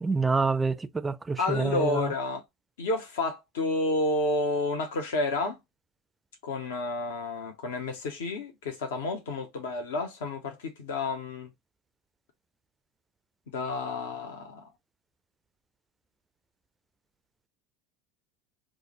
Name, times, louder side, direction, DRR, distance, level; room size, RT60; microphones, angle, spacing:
voice 1, 0.0-2.1, right 4 dB, 15° right, 0.3 m, -27 dB
voice 2, 1.4-2.4 2.8-5.6 6.4-11.5 13.5-14.7, left 2 dB, 65° left, 0.6 m, -30 dB
4.8 x 2.0 x 2.9 m
figure-of-eight pair, 70°, 0 cm